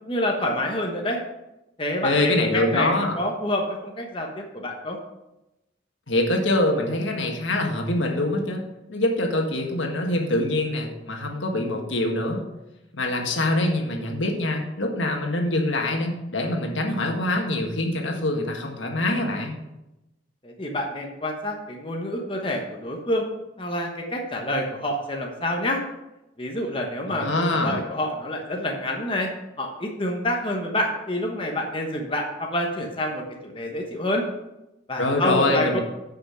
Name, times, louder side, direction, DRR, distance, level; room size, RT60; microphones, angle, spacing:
voice 1, 0.0-1.2 1.8-5.0 20.4-23.2 23.6-25.8 26.4-29.3 29.6-34.2 34.9-35.8, left 1 dB, 25° left, 1 dB, 1.1 m, -27 dB
voice 2, 2.0-3.2 6.1-8.6 8.9-12.4 12.9-19.6 27.1-27.8 35.0-35.8, left 2 dB, 85° left, 2 dB, 1.6 m, -24 dB
9.5 x 5.7 x 5.6 m, 0.95 s
head